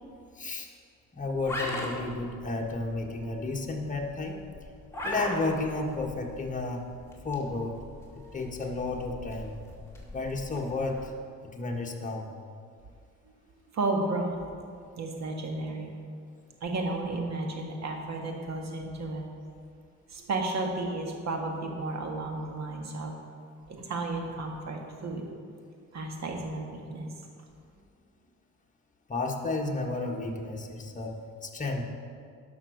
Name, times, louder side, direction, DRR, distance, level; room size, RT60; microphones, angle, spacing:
voice 1, 0.3-0.7 1.1-4.4 5.0-6.8 7.2-7.8 8.3-9.5 10.1-11.1 11.5-12.3 29.1-31.1 31.4-31.8, left 3 dB, 25° left, 0 dB, 1.5 m, -32 dB
sound 1, 1.3-11.1, left 1 dB, 10° left, 2.6 m, -41 dB
voice 2, 13.7-14.4 15.0-15.9 16.6-19.3 20.1-23.1 23.7-25.3 25.9-27.1, right 2 dB, 60° right, 2 dB, 1.9 m, -33 dB
12.0 x 5.9 x 6.5 m, 2.2 s
cardioid pair, 90°, 30 cm